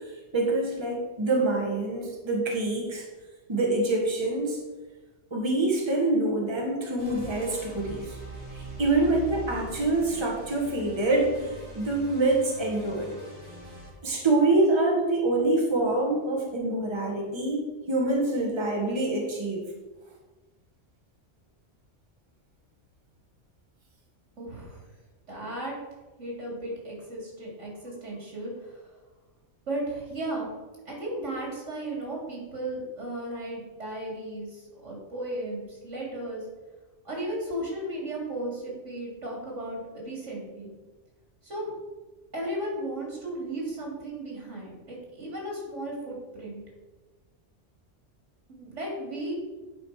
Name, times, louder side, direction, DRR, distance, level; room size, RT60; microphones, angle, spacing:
voice 1, 0.3-3.0 3.5-4.6 5.3-8.2 8.5-13.1 14.0-19.6, right 2 dB, 25° right, -1 dB, 1.6 m, -26 dB
sound 1, 7.0-13.9, right 2 dB, 45° left, 2.7 m, -42 dB
voice 2, 24.4-24.8 25.3-25.7 26.2-28.9 29.7-30.5 30.9-36.4 37.0-40.7 41.4-41.7 42.3-46.6 48.5-49.3, right 1 dB, 80° right, -2 dB, 3.1 m, -35 dB
11.0 x 5.2 x 4.8 m, 1.2 s
omnidirectional pair, 1.2 m